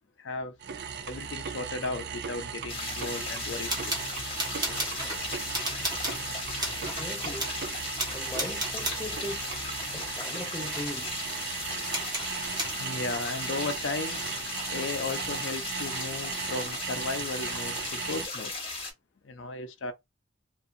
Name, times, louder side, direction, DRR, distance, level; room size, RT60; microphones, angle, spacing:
voice 1, 0.2-0.5 1.0-4.8 5.3-5.4 12.8-14.3 14.7-18.5 19.2-19.9, left 3 dB, 75° left, 0.6 m, -36 dB
sound 1, 0.6-18.3, right 7 dB, 55° right, 0.4 m, -37 dB
sound 2, 2.7-18.9, left 3 dB, 30° left, 1.1 m, -36 dB
sound 3, 3.5-5.2 5.5-6.2 6.6-7.1 7.4-7.6 8.0-9.1 9.6-10.5 10.7-11.0 11.9-12.8, right 1 dB, 20° right, 1.0 m, -35 dB
voice 2, 6.8-7.5 8.1-9.5 9.9-11.1, left 1 dB, 10° left, 0.5 m, -39 dB
2.6 x 2.5 x 2.6 m
head